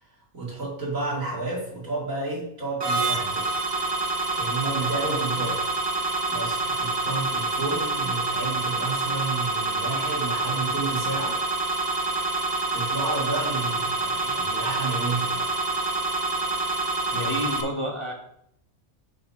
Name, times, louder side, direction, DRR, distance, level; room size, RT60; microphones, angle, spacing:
voice 1, 0.3-3.5 3.9-4.1 4.3-5.6 6.3-11.4 12.7-15.7 17.1-17.3, right 3 dB, 75° right, -5 dB, 3.0 m, -31 dB
sound 1, 2.8-17.6, right 2 dB, 35° right, 0.4 m, -27 dB
voice 2, 16.8-18.1, left 1 dB, 25° left, 0 dB, 0.8 m, -31 dB
6.6 x 4.0 x 5.7 m, 0.72 s
omnidirectional pair, 1.4 m